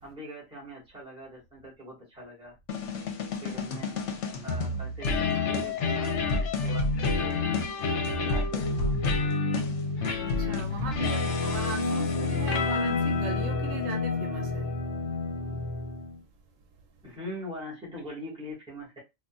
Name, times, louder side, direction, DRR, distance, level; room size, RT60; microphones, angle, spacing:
voice 1, 0.0-2.5 3.4-4.0 4.4-7.3 7.9-9.0 11.9-12.3 17.0-19.0, equal, 5° right, 1.6 m, -42 dB
sound 1, 2.7-16.2, left 3 dB, 70° left, 1.0 m, -29 dB
voice 2, 10.2-14.7 15.5-15.6, right 4 dB, 80° right, 1.0 m, -38 dB
3.8 x 2.5 x 2.4 m
omnidirectional pair, 1.3 m